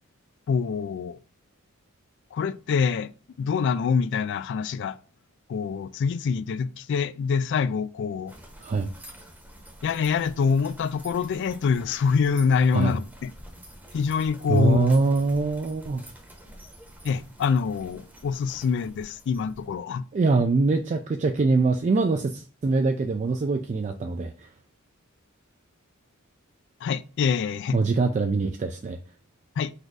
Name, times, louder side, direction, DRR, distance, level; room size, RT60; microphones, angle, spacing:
voice 1, 0.5-1.2 2.3-3.1 3.4-5.0 5.5-8.3 9.8-13.3 13.9-14.9 17.0-20.0 26.8-27.8 29.6-29.7, left 5 dB, 55° left, 0.3 m, -25 dB
sound 1, 8.3-19.8, equal, 10° right, 0.8 m, -47 dB
voice 2, 14.5-16.0 20.1-24.5 27.7-29.0, right 3 dB, 35° right, 0.3 m, -23 dB
4.0 x 2.6 x 4.7 m
head